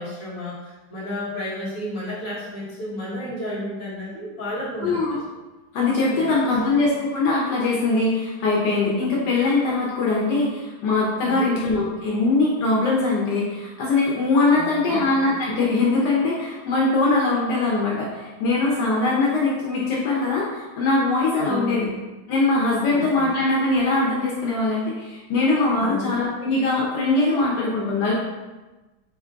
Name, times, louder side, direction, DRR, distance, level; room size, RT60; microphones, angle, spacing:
voice 1, 0.0-5.0 6.1-6.8 11.2-11.6 14.5-15.0 21.5-22.0 22.9-23.3 25.8-26.2, left 1 dB, 55° left, -8 dB, 1.7 m, -32 dB
voice 2, 4.8-5.2 5.7-21.9 22.3-28.1, left 3 dB, 85° left, -5 dB, 1.3 m, -22 dB
3.8 x 3.4 x 2.5 m, 1.1 s
omnidirectional pair, 1.8 m